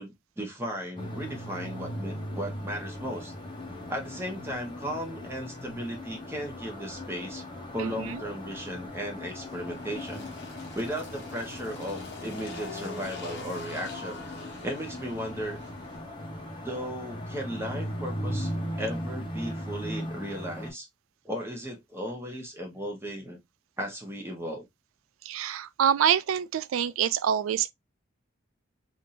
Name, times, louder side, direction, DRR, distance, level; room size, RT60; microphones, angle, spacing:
voice 1, 0.0-3.3 3.9-7.4 7.7-10.3 10.7-14.2 14.6-15.6 16.6-18.5 18.8-20.9 21.2-23.4 23.8-24.6, equal, 15° right, 1.1 m, -36 dB
sound 1, 1.0-20.7, equal, 25° left, 1.0 m, -38 dB
voice 2, 7.8-8.2 25.2-27.7, right 9 dB, 90° right, 0.4 m, -26 dB
Engine, 8.5-16.0, left 3 dB, 60° left, 1.1 m, -43 dB
3.5 x 2.8 x 2.6 m
head